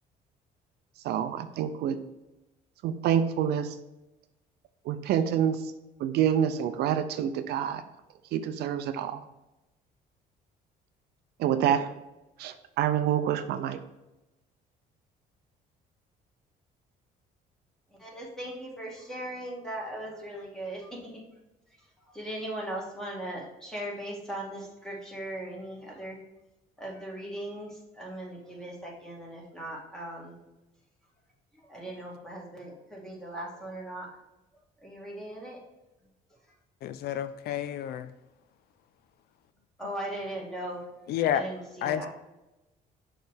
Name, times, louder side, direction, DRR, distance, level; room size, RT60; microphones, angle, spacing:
voice 1, 1.0-2.0 2.8-3.7 4.9-5.6 6.0-7.8 8.3-9.2 11.4-11.9 12.4-13.8, right 9 dB, 75° right, 10 dB, 0.5 m, -27 dB
voice 2, 18.0-21.0 22.1-26.2 26.8-27.7 27.9-30.4 31.7-34.1 34.8-35.6 39.8-40.8 41.3-42.1, right 1 dB, 5° left, -3 dB, 2.0 m, -38 dB
voice 3, 36.8-38.1 41.1-41.4 41.8-42.1, left 10 dB, 70° left, 12 dB, 0.4 m, -29 dB
6.3 x 3.3 x 5.0 m, 1.0 s
cardioid pair, 110°, 17 cm